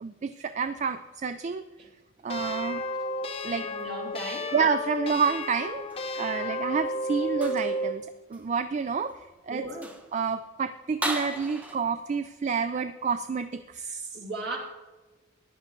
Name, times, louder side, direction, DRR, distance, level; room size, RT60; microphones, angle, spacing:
voice 1, 0.0-1.6 2.2-2.8 3.4-3.7 4.5-5.9 6.1-9.2 9.5-9.7 10.1-14.2, right 5 dB, 35° right, 10 dB, 0.3 m, -29 dB
sound 1, 2.3-8.0, left 1 dB, 30° left, 0.6 m, -32 dB
voice 2, 3.6-4.5 9.5-10.0 14.1-14.6, right 2 dB, 55° right, -1 dB, 2.5 m, -36 dB
sound 2, 5.3-6.2 7.3-7.8 8.3-8.5 9.1-9.2 9.7-10.2 11.0-11.8, right 1 dB, 10° right, 0.9 m, -36 dB
14.5 x 10.5 x 3.0 m, 1.2 s
head